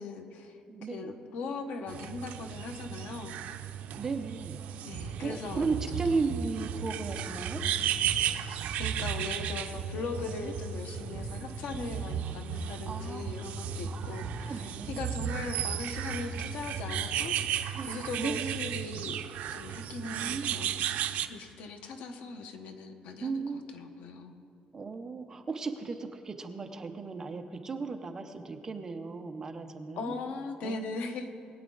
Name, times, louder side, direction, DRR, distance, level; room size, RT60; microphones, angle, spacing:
voice 1, 0.0-0.6 0.9-3.4 4.8-5.7 5.9-6.3 8.8-19.2 19.5-23.4 23.7-24.3 30.0-31.3, left 3 dB, 70° left, 6 dB, 1.1 m, -39 dB
voice 2, 0.7-1.1 3.9-4.6 5.2-7.6 10.2-10.5 12.2-12.3 12.9-13.2 13.9-15.4 17.7-17.9 18.2-18.6 20.1-20.6 23.2-23.6 24.7-30.1 30.6-30.8, right 4 dB, 20° right, 5 dB, 0.7 m, -35 dB
sound 1, 1.9-21.3, right 11 dB, 75° right, 0.5 m, -36 dB
sound 2, 4.9-17.4, right 4 dB, 50° right, 1.4 m, -38 dB
20.5 x 9.2 x 3.9 m, 2.4 s
cardioid pair, 180°, 3 cm